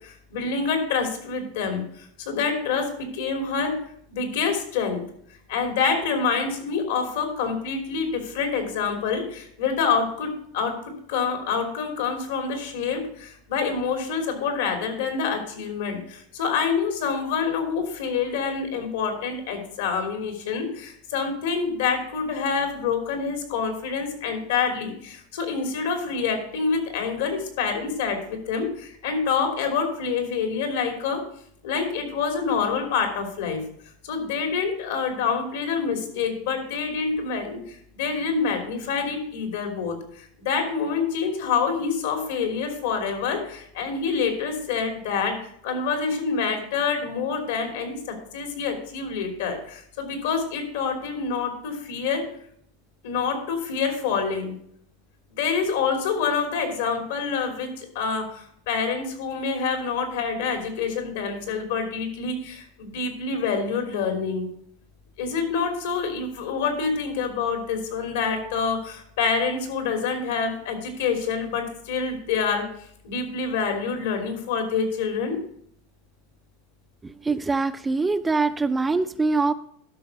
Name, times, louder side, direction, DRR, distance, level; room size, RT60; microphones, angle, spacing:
voice 1, 0.0-3.7 4.1-5.0 5.5-10.7 11.1-31.2 31.6-33.6 34.0-48.0 48.3-52.2 53.0-54.5 55.3-64.5 65.2-72.6 73.0-75.4, left 5 dB, 80° left, 4 dB, 3.1 m, -27 dB
voice 2, 77.2-79.5, right 3 dB, 10° right, 11 dB, 0.4 m, -23 dB
12.0 x 6.0 x 5.5 m, 0.66 s
supercardioid pair, 145°, 0 cm